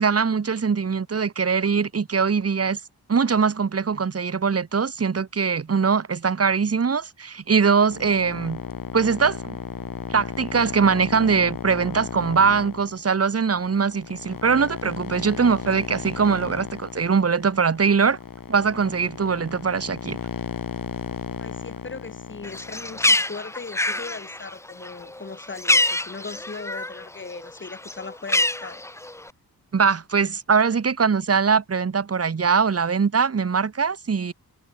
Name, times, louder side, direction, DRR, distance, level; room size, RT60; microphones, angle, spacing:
voice 1, 0.0-2.8 3.1-8.6 8.9-9.6 10.1-18.2 18.5-20.2 29.7-34.3, right 5 dB, 35° right, 2.4 m, -22 dB
sound 1, 7.9-23.1, left 7 dB, 55° left, 6.5 m, -35 dB
voice 2, 21.4-28.8, left 4 dB, 30° left, 4.9 m, -38 dB
Bird, 22.4-27.1 27.4-29.3, left 1 dB, 5° left, 0.7 m, -25 dB
wide cardioid pair, 145°, 39 cm